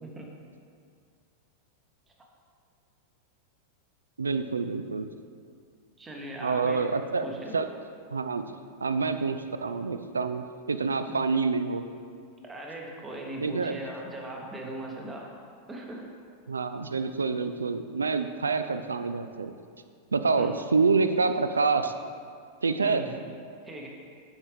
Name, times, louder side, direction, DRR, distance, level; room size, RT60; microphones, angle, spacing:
voice 1, 4.2-5.1 6.4-7.3 7.5-7.7 8.1-8.4 8.8-11.9 13.4-13.8 16.5-19.5 20.1-21.9 22.6-23.1, right 4 dB, 75° right, 9 dB, 0.3 m, -27 dB
voice 2, 6.0-6.8 7.2-7.6 11.1-11.3 12.4-15.3 15.7-16.1 20.4-20.5 22.8-23.1 23.6-23.9, right 1 dB, 15° right, 0 dB, 1.0 m, -39 dB
7.1 x 5.4 x 3.4 m, 2.2 s
figure-of-eight pair, 90°, 0 cm